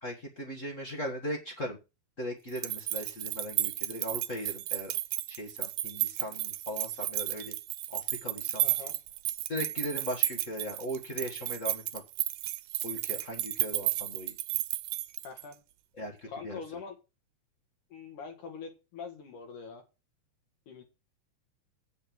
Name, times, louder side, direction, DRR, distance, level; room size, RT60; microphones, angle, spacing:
voice 1, 0.0-1.8 2.2-4.9 5.3-7.5 7.9-8.6 9.5-12.0 12.8-14.3 16.0-16.2 16.4-16.6, equal, 40° left, 1 dB, 1.1 m, -38 dB
sound 1, 2.5-15.5, right 15 dB, 85° right, 2.3 m, -33 dB
voice 2, 8.6-9.0 15.2-15.6 16.3-17.0 17.9-19.8 20.7-20.8, left 5 dB, 75° left, 3 dB, 3.0 m, -43 dB
8.7 x 6.5 x 6.1 m, 0.28 s
omnidirectional pair, 3.7 m